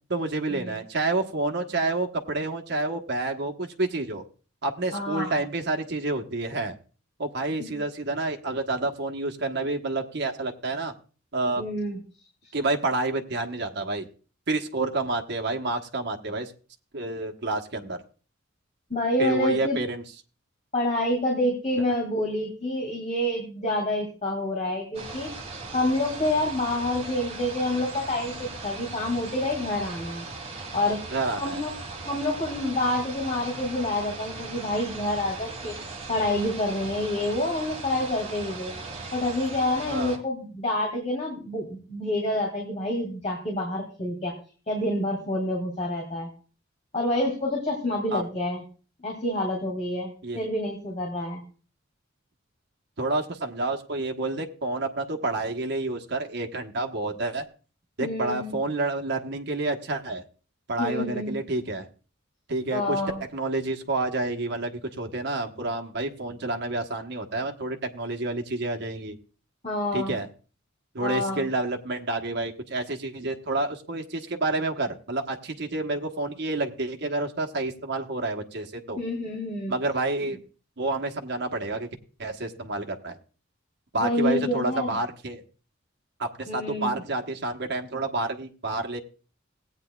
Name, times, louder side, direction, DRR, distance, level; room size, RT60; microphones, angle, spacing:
voice 1, 0.1-4.2 4.6-6.7 7.2-10.9 11.3-11.6 12.5-14.1 14.5-16.5 16.9-18.0 19.2-20.0 31.1-31.6 39.9-40.2 48.1-48.2 50.2-50.4 53.0-57.5 58.0-60.2 60.7-61.9 62.5-63.0 63.3-69.2 69.9-70.3 70.9-79.0 79.7-80.4 80.8-81.9 82.2-83.2 83.9-85.4 86.2-89.0, right 2 dB, 60° right, 4 dB, 1.1 m, -29 dB
voice 2, 4.9-5.4 7.6-7.8 11.6-12.0 18.9-19.8 20.7-25.3 25.7-30.3 30.7-31.0 31.4-31.7 32.1-35.7 36.1-38.7 39.1-44.3 44.7-46.3 46.9-48.6 49.0-51.4 58.0-58.6 60.8-61.4 62.7-63.2 69.6-70.2 71.0-71.5 79.0-79.7 83.9-85.0 86.5-87.0, left 1 dB, 35° left, 0 dB, 2.4 m, -28 dB
sound 1, 24.9-40.2, right 3 dB, 35° right, 2.0 m, -38 dB
17.5 x 8.9 x 2.3 m, 0.37 s
head